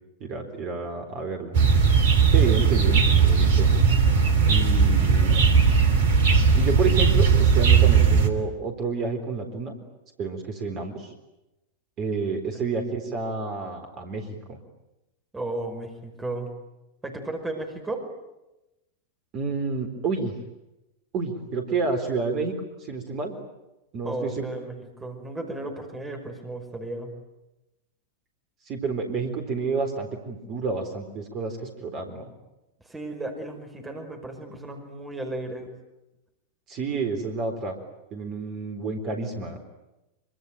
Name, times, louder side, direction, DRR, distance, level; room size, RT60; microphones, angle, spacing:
voice 1, 0.2-1.6 2.3-3.7 4.4-5.4 6.5-9.8 10.2-11.1 12.0-14.6 19.3-20.3 21.1-23.4 23.9-24.5 28.6-32.3 36.7-37.8 38.1-39.6, right 4 dB, 35° right, 6 dB, 4.0 m, -29 dB
sound 1, 1.5-8.3, right 6 dB, 55° right, 3.3 m, -18 dB
voice 2, 15.3-16.5 17.0-18.0 24.0-27.1 32.9-35.7, right 2 dB, 10° right, 4 dB, 5.3 m, -34 dB
25.5 x 25.0 x 9.2 m, 0.96 s
figure-of-eight pair, 90°, 0 cm